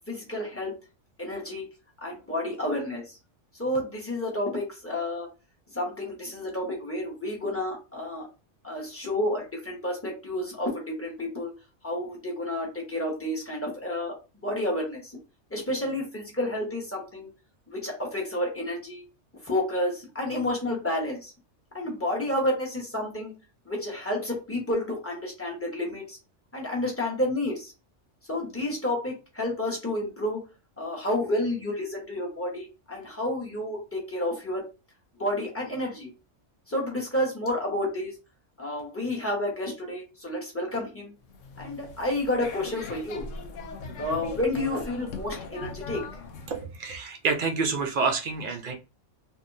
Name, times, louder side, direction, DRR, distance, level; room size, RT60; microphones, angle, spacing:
voice 1, 0.1-0.7 1.2-1.7 2.0-3.2 3.6-5.3 5.7-8.3 8.6-11.5 11.8-14.1 14.4-15.1 15.5-17.3 17.7-19.0 19.4-21.3 21.7-23.3 23.7-26.2 26.5-27.7 28.3-30.4 30.8-34.6 35.2-36.1 36.7-38.1 38.6-41.1 41.6-43.2 44.0-46.0, left 1 dB, 10° left, -1 dB, 1.0 m, -30 dB
sound 1, 41.2-46.7, left 4 dB, 75° left, 1.0 m, -40 dB
voice 2, 46.5-48.7, right 4 dB, 55° right, 5 dB, 0.6 m, -28 dB
3.5 x 2.6 x 2.5 m, 0.30 s
omnidirectional pair, 1.3 m